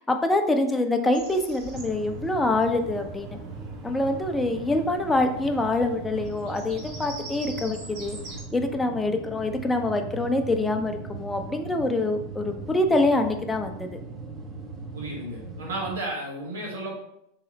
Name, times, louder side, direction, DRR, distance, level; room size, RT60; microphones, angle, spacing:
voice 1, 0.0-3.4 3.8-8.2 8.5-13.9, left 2 dB, 10° left, 5 dB, 0.5 m, -25 dB
Bird vocalization bird call bird song, 1.1-8.4, right 3 dB, 55° right, 1.4 m, -45 dB
sound 1, 1.7-16.0, right 2 dB, 30° right, 0.7 m, -39 dB
voice 2, 14.9-16.9, right 2 dB, 90° right, -2 dB, 1.4 m, -33 dB
3.1 x 2.9 x 3.9 m, 0.76 s
hypercardioid pair, 100°, 0 cm